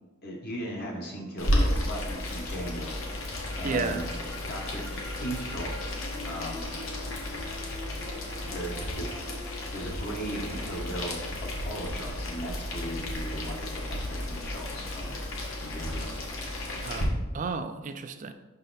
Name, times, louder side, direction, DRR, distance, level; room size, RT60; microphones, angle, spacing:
voice 1, 0.2-3.0 3.3-4.0 4.5-4.8 5.2-6.7 8.5-9.1 9.7-15.2 15.6-16.2, right 1 dB, 45° left, -2 dB, 0.9 m, -37 dB
Boiling, 1.4-17.0, left 1 dB, 70° left, 1.3 m, -33 dB
sound 1, 2.4-14.1, left 1 dB, 15° left, 0.8 m, -48 dB
voice 2, 3.6-4.0 16.8-18.3, right 4 dB, 35° right, 9 dB, 0.3 m, -33 dB
5.8 x 4.0 x 4.0 m, 1.2 s
head